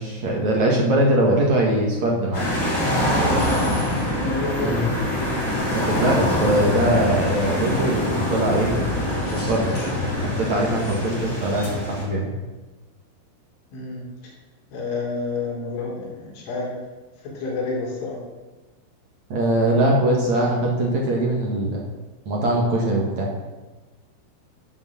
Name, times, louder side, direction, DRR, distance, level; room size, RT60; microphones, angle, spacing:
voice 1, 0.0-2.5 4.6-4.8 5.7-8.9 9.3-9.9 10.2-12.3 19.3-21.8 22.2-23.3, right 1 dB, 55° right, -2 dB, 2.2 m, -21 dB
sound 1, 2.3-12.0, left 1 dB, 25° left, 5.0 m, -24 dB
voice 2, 2.9-3.9 4.2-4.9 13.7-14.3 14.7-16.7 17.2-18.2, left 3 dB, 70° left, -4 dB, 5.9 m, -29 dB
14.5 x 7.8 x 7.2 m, 1.2 s
omnidirectional pair, 5.9 m